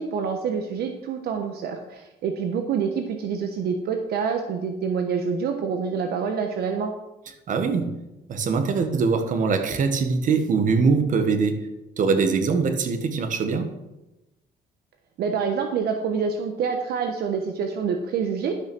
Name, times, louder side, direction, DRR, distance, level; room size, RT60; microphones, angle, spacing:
voice 1, 0.0-6.9 15.2-18.5, right 6 dB, 70° right, 1.1 m, -27 dB
voice 2, 7.5-8.0 8.3-11.7 12.0-13.7, right 5 dB, 50° right, 1.5 m, -22 dB
12.0 x 6.1 x 6.2 m
cardioid pair, 110°, 17 cm